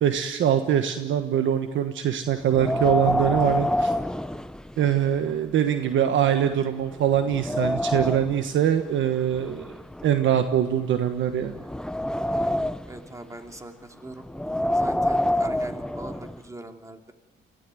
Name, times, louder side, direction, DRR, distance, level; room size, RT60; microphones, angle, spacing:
voice 1, 0.0-3.9 4.8-9.7 10.0-11.5, right 9 dB, 75° right, 8 dB, 1.4 m, -23 dB
Wind, 2.5-5.1 5.5-5.6 6.2-6.3 6.8-8.4 9.3-10.8 11.4-13.0 14.3-16.4, left 1 dB, 5° left, 0.8 m, -27 dB
voice 2, 12.9-14.3 14.7-17.1, right 1 dB, 15° right, 5 dB, 2.7 m, -41 dB
23.5 x 16.0 x 9.1 m, 1.3 s
cardioid pair, 90°, 20 cm